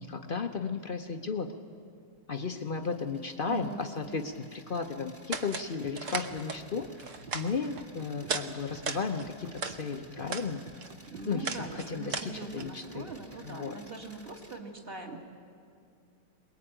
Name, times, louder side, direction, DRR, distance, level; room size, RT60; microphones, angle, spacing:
voice 1, 0.0-1.5 2.3-6.9 7.3-10.6 11.2-13.1 13.4-13.8, left 5 dB, 65° left, 6 dB, 0.5 m, -34 dB
sound 1, 2.4-14.6, equal, 10° right, 1.3 m, -57 dB
voice 2, 3.5-3.8 11.1-15.2, right 3 dB, 30° right, 2 dB, 2.2 m, -42 dB
sound 2, 5.3-5.7 6.0-6.6 7.0-7.8 8.2-8.5 8.7-9.8 10.2-10.5 10.8-12.6, right 4 dB, 45° right, 1.2 m, -36 dB
sound 3, 5.8-13.5, right 5 dB, 65° right, 1.7 m, -51 dB
23.0 x 21.0 x 9.0 m, 2.4 s
omnidirectional pair, 2.2 m